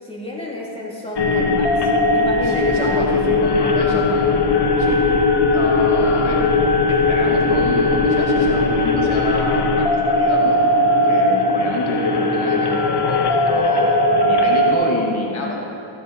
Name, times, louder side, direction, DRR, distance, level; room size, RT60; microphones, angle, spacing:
voice 1, 0.0-3.2, left 1 dB, 10° left, -4 dB, 2.8 m, -31 dB
sound 1, 1.2-14.7, left 2 dB, 50° left, 1.3 m, -18 dB
voice 2, 2.4-5.0 5.5-6.4 6.9-10.6 11.1-13.9 14.2-15.7, left 2 dB, 70° left, -1 dB, 1.7 m, -28 dB
15.5 x 9.8 x 4.2 m, 2.9 s
cardioid pair, 60°, 50 cm